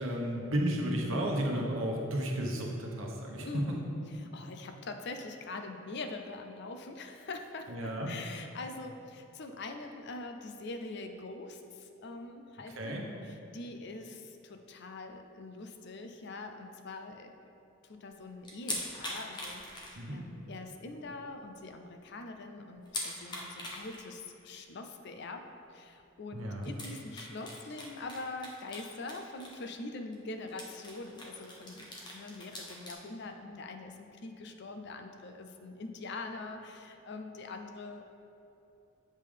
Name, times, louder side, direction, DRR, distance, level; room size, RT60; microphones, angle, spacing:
voice 1, 0.0-3.8 7.7-8.1 12.7-13.0 20.0-20.2 26.3-26.7, right 1 dB, 70° right, -1 dB, 1.0 m, -33 dB
voice 2, 3.4-13.0 13.2-17.3 17.9-25.4 25.7-38.0, left 3 dB, 55° left, 6 dB, 0.5 m, -43 dB
sound 1, 18.4-20.4 20.7-20.8 21.3-21.4 21.6-21.7 22.9-24.1 24.5-24.7 26.0-26.1 26.6-29.8 30.1-30.2 30.5-32.9, left 1 dB, 20° left, 0.8 m, -42 dB
7.4 x 3.7 x 5.0 m, 2.8 s
head